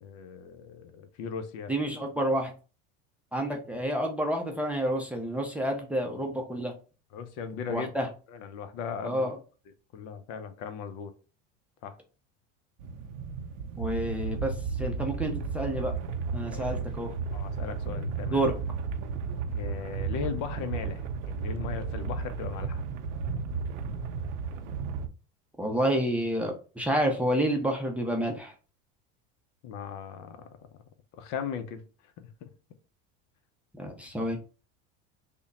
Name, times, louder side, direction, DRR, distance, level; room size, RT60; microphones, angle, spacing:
voice 1, 0.0-1.7 7.1-7.9 8.3-9.3 9.9-11.1 11.8-12.0 16.4-16.7 17.3-18.5 19.5-22.8 29.6-30.4 31.2-31.8 32.2-32.5, left 7 dB, 55° left, 0.7 m, -38 dB
voice 2, 1.7-2.5 3.3-6.7 7.7-8.1 9.0-9.4 13.8-16.0 16.3-17.1 18.3-18.6 25.6-28.5 33.8-34.4, right 1 dB, 5° right, 0.6 m, -29 dB
sound 1, 12.8-25.1, right 5 dB, 85° right, 0.6 m, -33 dB
3.5 x 2.2 x 4.0 m
supercardioid pair, 120°, 36 cm